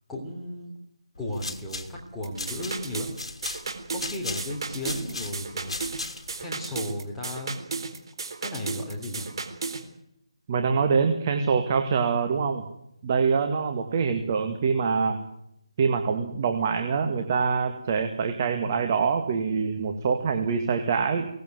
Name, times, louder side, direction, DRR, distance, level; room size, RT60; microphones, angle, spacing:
voice 1, 0.1-0.7 1.2-3.1 3.9-5.7 6.1-7.6 8.4-9.4, left 1 dB, 5° left, -4 dB, 3.3 m, -35 dB
sound 1, 1.2-6.4, left 3 dB, 70° left, 3.2 m, -37 dB
sound 2, 2.2-9.8, right 4 dB, 50° right, 4.2 m, -34 dB
voice 2, 10.5-12.6 13.0-15.2 15.8-21.3, right 5 dB, 25° right, 5 dB, 2.1 m, -25 dB
23.5 x 18.5 x 9.5 m, 0.81 s
figure-of-eight pair, 165°, 3 cm